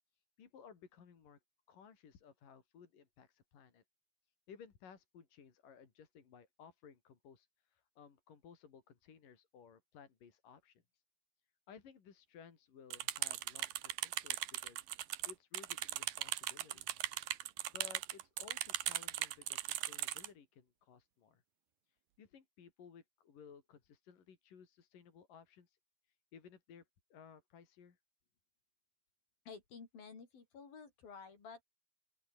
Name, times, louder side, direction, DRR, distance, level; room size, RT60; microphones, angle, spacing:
voice 1, 0.4-1.4 1.7-3.8 4.5-10.8 11.7-14.9 15.2-16.9 17.7-21.4 22.2-25.8 26.3-26.8 27.1-28.0, left 7 dB, 70° left, 4.8 m, -58 dB
sound 1, 12.9-20.3, right 14 dB, 85° right, 3.0 m, -39 dB
voice 2, 29.5-31.6, left 5 dB, 85° left, 7.0 m, -52 dB
open air
omnidirectional pair, 4.0 m